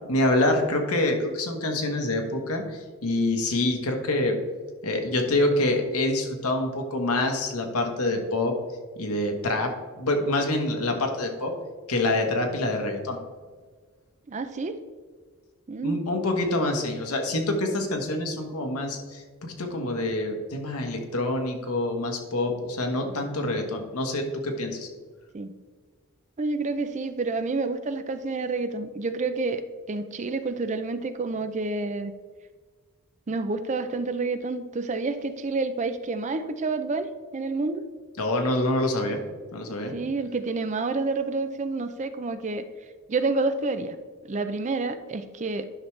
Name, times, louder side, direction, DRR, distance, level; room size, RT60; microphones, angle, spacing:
voice 1, 0.1-4.4 4.8-8.5 9.0-11.5 11.9-13.2 15.8-24.9 38.2-39.2 39.5-39.9, left 2 dB, 90° left, 4 dB, 1.3 m, -26 dB
voice 2, 14.3-14.8 15.7-16.0 23.0-23.2 25.3-25.5 26.4-29.6 29.9-32.1 33.3-37.1 37.3-37.9 39.9-42.6 43.1-44.0 44.3-45.6, right 3 dB, 30° right, 10 dB, 0.4 m, -29 dB
10.5 x 5.8 x 3.2 m, 1.5 s
head